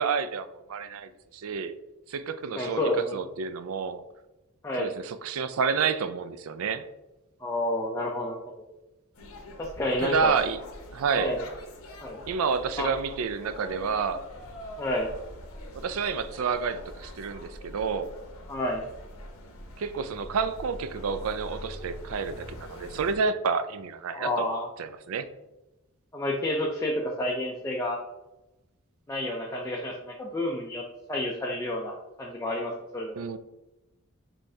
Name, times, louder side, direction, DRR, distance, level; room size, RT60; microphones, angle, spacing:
voice 1, 0.0-1.7 2.1-2.8 3.1-4.0 4.8-6.8 10.0-10.6 10.9-11.3 12.3-14.2 15.7-18.1 19.8-24.5 24.8-25.3 33.1-33.4, right 5 dB, 70° right, 11 dB, 0.4 m, -29 dB
voice 2, 2.6-3.2 4.6-4.9 7.4-8.4 9.6-10.4 11.2-11.4 12.0-12.2 12.8-12.9 14.8-15.1 18.5-18.9 24.1-24.7 26.1-28.0 29.1-30.8 31.1-33.1, left 1 dB, 15° left, -1 dB, 0.4 m, -29 dB
sound 1, 9.1-23.2, left 1 dB, 70° left, 0.8 m, -44 dB
5.4 x 3.2 x 2.7 m, 1.0 s
head